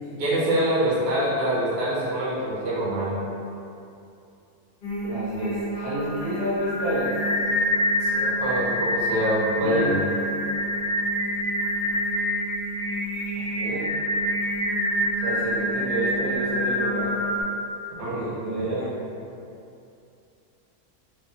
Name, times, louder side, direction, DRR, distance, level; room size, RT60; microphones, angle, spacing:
voice 1, 0.2-3.1 8.0-10.0 18.0-18.3 18.6-18.7, right 1 dB, 55° right, -8 dB, 0.8 m, -25 dB
Singing, 4.8-17.4, equal, 65° left, 0.5 m, -26 dB
voice 2, 5.0-7.2 9.6-9.9 13.4-13.9 15.2-17.1 18.0-18.9, right 1 dB, 80° right, -9 dB, 1.4 m, -29 dB
2.8 x 2.3 x 2.5 m, 2.6 s
omnidirectional pair, 1.6 m